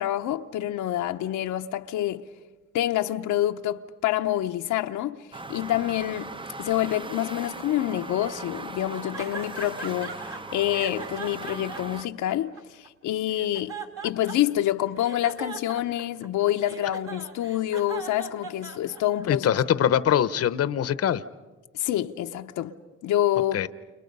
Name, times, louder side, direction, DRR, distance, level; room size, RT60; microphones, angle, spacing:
voice 1, 0.0-2.2 2.7-5.2 5.5-6.3 6.6-10.2 10.5-13.8 14.0-19.5 21.7-22.8 23.0-23.6, left 13 dB, 85° left, 0.9 m, -27 dB
sound 1, 5.3-12.0, right 3 dB, 15° right, 0.7 m, -39 dB
sound 2, 9.1-10.4 10.7-12.9 13.3-14.6 15.0-19.2, right 4 dB, 45° right, 3.4 m, -39 dB
voice 2, 19.3-21.2 23.5-23.7, left 9 dB, 50° left, 0.8 m, -23 dB
29.5 x 29.5 x 5.4 m
cardioid pair, 90°, 30 cm